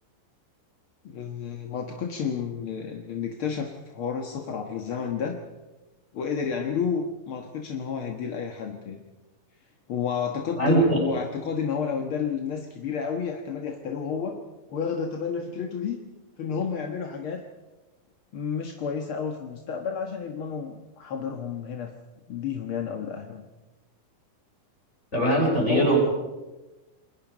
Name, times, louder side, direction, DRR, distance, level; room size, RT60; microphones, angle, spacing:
voice 1, 1.0-5.4 6.1-9.0 9.9-14.4 14.7-16.0 16.4-17.4 18.3-21.9 22.3-23.5 25.7-26.0, left 6 dB, 50° left, 3 dB, 1.7 m, -31 dB
voice 2, 10.6-11.1 25.1-26.0, right 1 dB, 15° left, -1 dB, 7.4 m, -21 dB
29.5 x 21.5 x 5.1 m, 1.1 s
omnidirectional pair, 4.1 m